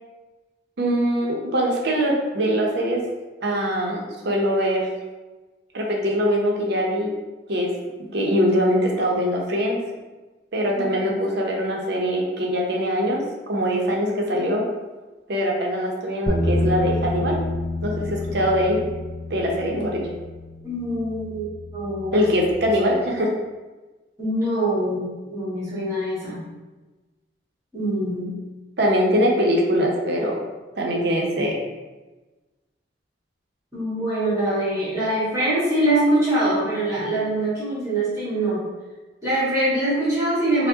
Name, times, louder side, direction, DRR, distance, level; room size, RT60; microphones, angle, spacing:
voice 1, 0.8-3.0 3.4-4.9 5.7-7.1 7.5-7.7 8.1-9.8 10.5-14.7 15.3-17.4 17.8-18.8 19.3-20.1 22.1-23.3 28.8-30.4 30.8-31.6, equal, 65° right, -1 dB, 0.7 m, -22 dB
voice 2, 10.7-11.1 20.6-22.3 22.6-22.7 24.2-26.4 27.7-28.3 33.7-38.6 39.2-40.7, right 1 dB, 15° right, -11 dB, 1.4 m, -24 dB
sound 1, 16.3-22.5, left 1 dB, 5° left, 0.5 m, -29 dB
4.6 x 2.1 x 2.7 m, 1.2 s
head